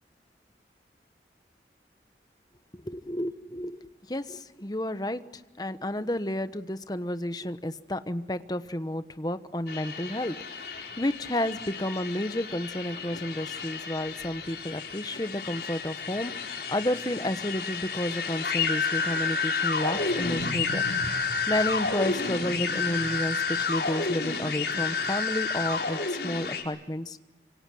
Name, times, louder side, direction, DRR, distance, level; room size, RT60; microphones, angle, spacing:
voice 1, 2.7-20.8 21.1-27.2, left 1 dB, 20° left, 11 dB, 1.1 m, -31 dB
sound 1, 9.7-26.6, left 4 dB, 70° left, 4.7 m, -31 dB
26.0 x 25.0 x 7.7 m, 1.1 s
head